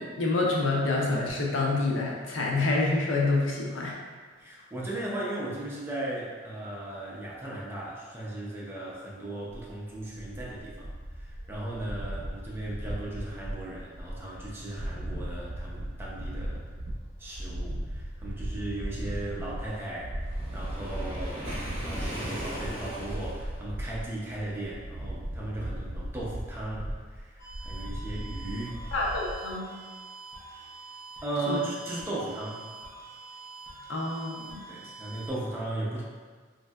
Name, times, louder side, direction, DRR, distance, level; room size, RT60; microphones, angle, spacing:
voice 1, 0.0-4.0 28.9-29.6 31.5-31.6 33.9-34.6, left 2 dB, 85° left, -2 dB, 0.5 m, -27 dB
voice 2, 4.4-10.9 11.2-16.6 17.2-20.2 20.5-28.8 31.2-32.6 34.7-36.0, right 1 dB, 10° right, -6 dB, 0.5 m, -36 dB
sound 1, 9.6-29.3, right 1 dB, 80° right, 0.6 m, -37 dB
Waves surf, 20.3-23.6, equal, 30° right, 1.0 m, -38 dB
sound 2, 27.4-35.3, right 3 dB, 45° left, 0.7 m, -46 dB
3.1 x 2.6 x 2.2 m, 1.5 s
head